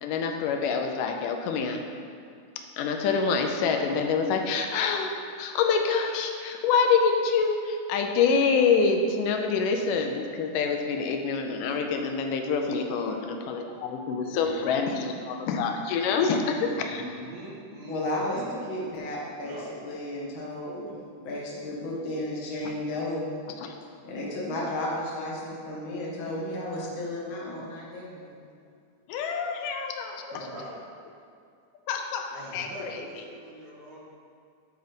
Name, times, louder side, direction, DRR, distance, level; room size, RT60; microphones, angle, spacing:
voice 1, 0.0-1.8 2.8-17.0 22.6-22.7 23.6-23.7 27.6-27.7 29.1-30.5 31.9-33.1, left 5 dB, 90° left, 3 dB, 2.3 m, -26 dB
voice 2, 14.2-14.7 16.7-18.5 19.4-19.7 30.3-30.7 32.3-34.1, right 1 dB, 70° right, -6 dB, 3.0 m, -42 dB
voice 3, 17.9-18.4 18.7-19.6 19.8-20.8 21.2-23.3 24.0-28.4, left 1 dB, 45° left, -5 dB, 1.9 m, -33 dB
10.5 x 3.9 x 5.1 m, 2.3 s
omnidirectional pair, 3.7 m